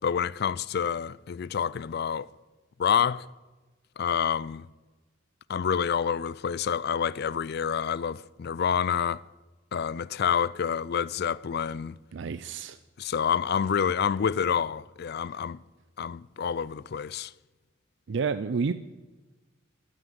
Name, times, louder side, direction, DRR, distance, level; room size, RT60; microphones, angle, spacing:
voice 1, 0.0-2.3 2.8-3.3 4.0-4.7 5.5-9.2 9.7-12.0 13.0-15.6 16.0-17.3, left 7 dB, 55° left, 0.4 m, -28 dB
voice 2, 12.1-12.8 18.1-18.7, right 5 dB, 60° right, 0.4 m, -29 dB
15.0 x 9.2 x 7.8 m
head